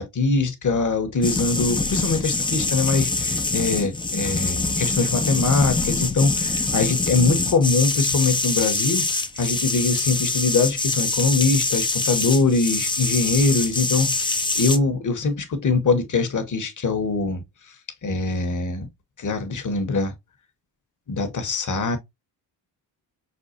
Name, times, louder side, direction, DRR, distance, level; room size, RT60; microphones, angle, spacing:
voice 1, 0.0-17.4 18.0-18.9 19.2-20.1 21.1-22.0, left 4 dB, 40° left, 1.1 m, -23 dB
sound 1, 1.2-14.8, left 3 dB, 10° left, 0.5 m, -24 dB
5.4 x 2.2 x 2.5 m
supercardioid pair, 55°, 48 cm